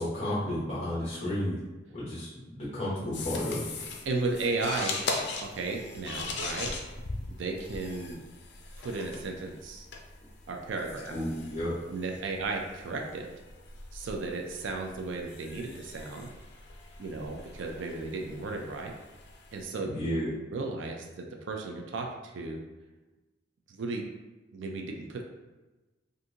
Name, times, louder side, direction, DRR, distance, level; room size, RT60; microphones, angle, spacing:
voice 1, 0.0-1.6 1.9-2.3 2.6-3.6 11.1-11.7 19.8-20.3, left 1 dB, 35° left, -9 dB, 0.9 m, -32 dB
sound 1, 3.1-19.6, left 3 dB, 65° left, 0.5 m, -40 dB
voice 2, 4.1-5.0 5.4-6.7 7.3-8.2 8.8-9.9 10.5-11.1 11.9-13.3 13.9-16.3 17.0-18.9 19.5-19.9 20.5-22.6 23.7-24.0 24.5-25.3, right 3 dB, 80° right, 2 dB, 0.4 m, -34 dB
3.6 x 2.6 x 2.7 m, 1.1 s
head